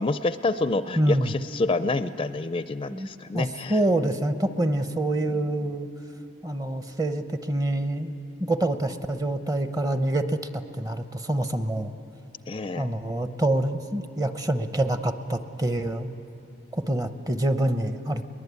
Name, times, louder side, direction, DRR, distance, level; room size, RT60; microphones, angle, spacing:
voice 1, 0.0-3.8 5.3-5.4 12.5-12.9, left 2 dB, 30° left, 12 dB, 0.4 m, -28 dB
voice 2, 1.0-1.3 2.9-3.1 3.3-5.9 6.4-8.1 8.4-11.9 12.8-16.1 16.7-18.3, right 1 dB, 20° right, 10 dB, 0.8 m, -26 dB
22.5 x 20.0 x 8.2 m, 2.9 s
head